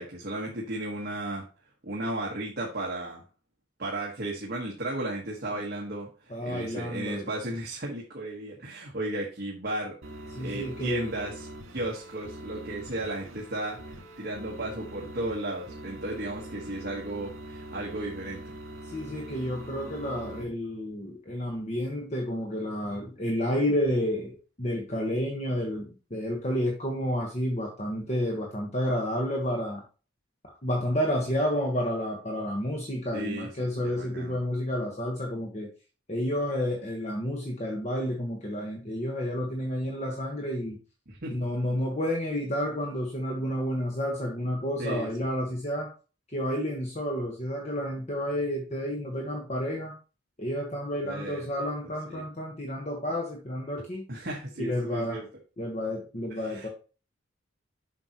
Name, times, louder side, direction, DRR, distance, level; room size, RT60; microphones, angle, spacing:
voice 1, 0.0-1.4 1.8-3.2 3.8-10.0 10.4-18.5 33.1-34.4 41.1-41.3 44.8-45.1 51.0-51.7 52.1-52.2 54.1-55.3 56.3-56.7, right 1 dB, 50° right, -2 dB, 1.4 m, -35 dB
voice 2, 6.3-7.3 10.3-11.1 18.9-29.8 30.4-35.7 36.1-40.8 41.3-45.9 46.3-49.9 50.4-54.0 54.6-55.2 55.6-56.7, equal, 35° left, 0 dB, 1.3 m, -30 dB
sound 1, 10.0-20.4, right 1 dB, 80° right, 2.2 m, -43 dB
7.4 x 6.1 x 3.0 m, 0.34 s
head